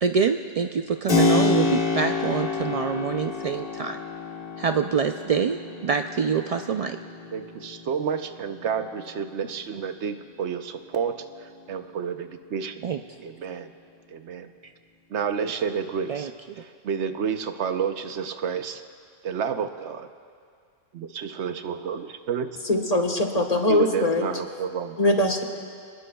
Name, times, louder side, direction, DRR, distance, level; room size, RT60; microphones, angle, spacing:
voice 1, 0.0-4.0 4.6-7.0 12.8-13.0 16.1-16.3, right 6 dB, 65° right, 6 dB, 0.3 m, -25 dB
Keyboard (musical), 1.1-9.6, left 4 dB, 55° left, 1.6 m, -28 dB
voice 2, 7.3-12.8 13.2-13.7 14.1-14.5 15.1-16.3 16.6-18.8 19.2-20.1 20.9-22.5 23.7-25.0, right 7 dB, 85° right, 8 dB, 1.0 m, -30 dB
voice 3, 22.6-24.3 25.0-25.4, left 1 dB, 35° left, 3 dB, 1.3 m, -22 dB
26.0 x 20.0 x 2.3 m, 2.2 s
omnidirectional pair, 1.1 m